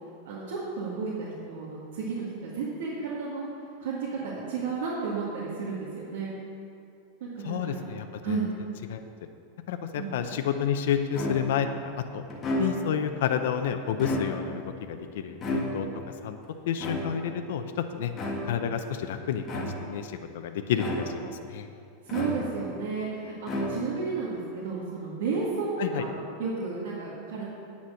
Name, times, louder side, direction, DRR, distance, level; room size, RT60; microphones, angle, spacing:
voice 1, 0.3-3.5 3.8-6.3 7.2-7.9 8.2-8.5 9.9-10.1 22.0-27.5, right 4 dB, 75° right, -6 dB, 2.0 m, -32 dB
voice 2, 7.4-8.4 8.9-9.0 9.7-11.7 12.0-12.2 12.6-14.6 14.9-15.9 16.2-16.4 16.7-18.1 18.5-21.7 25.8-26.0, left 8 dB, 70° left, 7 dB, 0.6 m, -30 dB
sound 1, 11.1-11.7 12.3-13.1 13.9-14.6 15.4-16.1 16.8-17.4 18.1-18.7 19.4-20.0 20.8-21.4 22.1-22.8 23.4-24.1, left 1 dB, 20° left, 1.6 m, -32 dB
9.5 x 7.2 x 6.3 m, 2.5 s
supercardioid pair, 165°, 0 cm